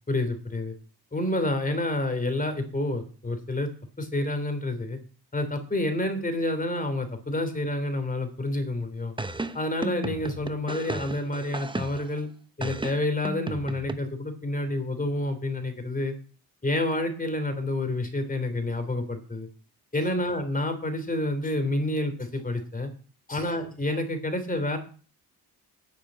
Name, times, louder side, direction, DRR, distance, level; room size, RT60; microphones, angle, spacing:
voice 1, 0.1-0.7 1.1-3.7 4.0-5.0 5.3-9.1 9.5-12.3 12.6-16.1 16.6-19.5 19.9-22.9 23.3-24.8, left 1 dB, 20° left, 7 dB, 3.1 m, -28 dB
sound 1, 9.2-12.2 12.6-14.0, right 2 dB, 15° right, 0.9 m, -34 dB
9.5 x 7.0 x 8.7 m, 0.39 s
cardioid pair, 90°, 38 cm